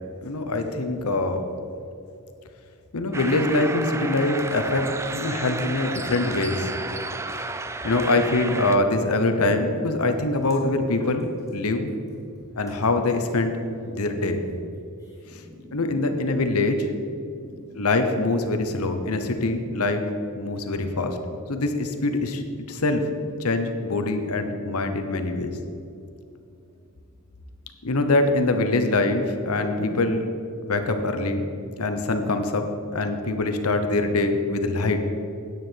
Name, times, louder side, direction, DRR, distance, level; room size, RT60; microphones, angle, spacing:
voice 1, 0.2-1.5 2.9-6.7 7.8-11.9 12.6-13.6 13.9-14.4 15.7-16.9 17.7-20.1 20.4-21.2 21.5-23.0 23.4-25.5 27.8-30.3 30.6-31.5 31.8-32.6 32.9-35.0, left 2 dB, 85° left, 7 dB, 0.9 m, -24 dB
sound 1, 3.1-8.8, right 3 dB, 15° right, 0.3 m, -32 dB
voice 2, 15.0-16.7 17.3-17.9, left 1 dB, 15° left, -8 dB, 2.4 m, -45 dB
9.4 x 9.3 x 4.6 m, 2.6 s
head